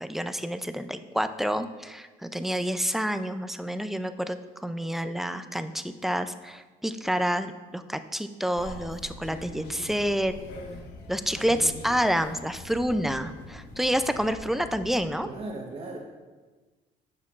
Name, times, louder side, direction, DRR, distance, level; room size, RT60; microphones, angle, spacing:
voice 1, 0.0-10.3 11.1-15.3, equal, ahead, 10 dB, 0.3 m, -28 dB
sound 1, 8.5-15.2, left 2 dB, 85° left, 1.2 m, -43 dB
voice 2, 15.2-16.0, right 2 dB, 35° right, -2 dB, 1.0 m, -37 dB
11.0 x 6.6 x 2.4 m, 1.3 s
cardioid pair, 110°, 17 cm